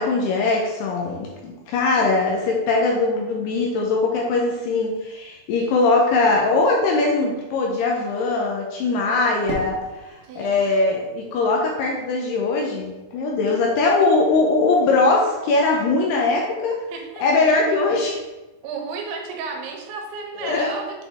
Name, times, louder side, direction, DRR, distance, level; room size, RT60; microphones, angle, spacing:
voice 1, 0.0-9.8 10.4-16.8 17.2-18.2 20.4-20.7, left 3 dB, 80° left, -1 dB, 2.5 m, -21 dB
Fireworks, 9.4-11.7, right 1 dB, 60° right, 2.3 m, -37 dB
voice 2, 10.2-10.7 16.9-17.2 18.6-21.1, right 4 dB, 85° right, 1 dB, 3.2 m, -33 dB
8.0 x 3.9 x 3.5 m, 1.1 s
omnidirectional pair, 5.2 m